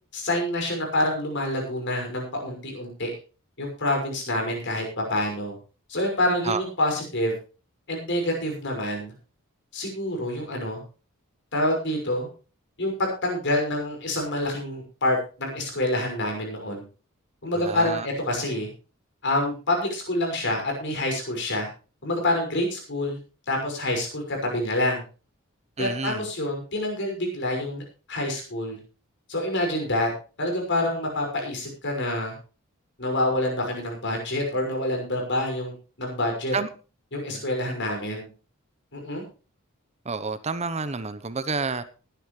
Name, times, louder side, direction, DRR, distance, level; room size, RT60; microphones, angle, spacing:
voice 1, 0.1-3.1 3.6-5.6 5.9-7.3 7.9-9.1 9.7-10.8 11.5-12.3 12.8-16.8 17.4-18.7 19.2-21.7 22.0-23.2 23.5-25.0 25.8-27.8 28.1-28.8 29.3-30.1 30.4-32.3 33.0-36.5 37.1-38.3 38.9-39.2, left 1 dB, 55° left, 6.1 m, -27 dB
voice 2, 17.5-18.1 25.8-26.2 36.5-36.7 37.3-37.4 40.0-41.8, right 4 dB, 30° right, 0.9 m, -29 dB
20.0 x 10.5 x 3.2 m
head